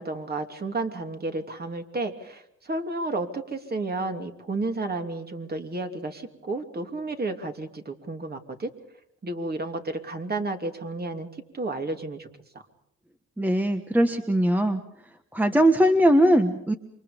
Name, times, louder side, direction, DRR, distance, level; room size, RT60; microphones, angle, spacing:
voice 1, 0.0-8.7 9.2-11.3 11.5-12.3, right 2 dB, 30° right, 5 dB, 2.9 m, -32 dB
voice 2, 13.4-14.8 15.3-16.7, equal, 5° right, 7 dB, 1.3 m, -20 dB
28.0 x 24.5 x 5.2 m, 0.71 s
cardioid pair, 90°, 30 cm